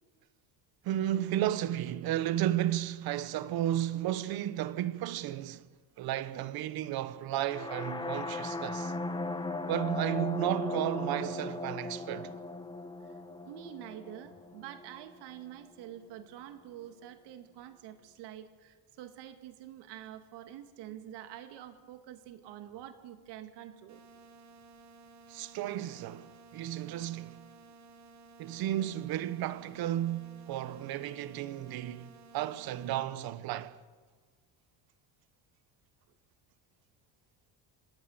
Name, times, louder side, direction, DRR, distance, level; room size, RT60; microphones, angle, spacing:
voice 1, 0.8-5.6 6.0-8.9 9.7-12.3 25.3-27.4 28.4-33.8, right 12 dB, 65° right, 1.1 m, -33 dB
sound 1, 7.5-15.3, left 2 dB, 10° left, 1.4 m, -38 dB
voice 2, 13.0-24.0, right 11 dB, 85° right, 2.1 m, -47 dB
sound 2, 23.9-32.9, right 4 dB, 45° right, 2.2 m, -55 dB
26.5 x 18.5 x 7.3 m
cardioid pair, 145°, 40 cm